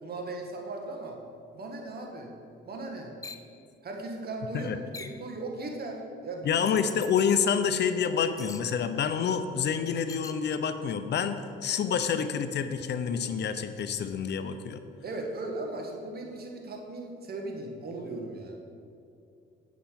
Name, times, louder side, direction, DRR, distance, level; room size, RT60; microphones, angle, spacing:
voice 1, 0.0-1.2 1.5-2.3 2.7-3.1 3.8-4.7 5.0-6.7 15.0-18.6, right 2 dB, 50° right, 1 dB, 1.7 m, -37 dB
sound 1, 3.2-3.5 4.9-5.3 6.7-7.1 8.4-8.7 10.1-10.4, left 3 dB, 15° left, 0.5 m, -43 dB
voice 2, 6.4-14.8, left 7 dB, 60° left, 10 dB, 0.7 m, -28 dB
8.5 x 7.0 x 5.8 m, 2.6 s
cardioid pair, 90°, 20 cm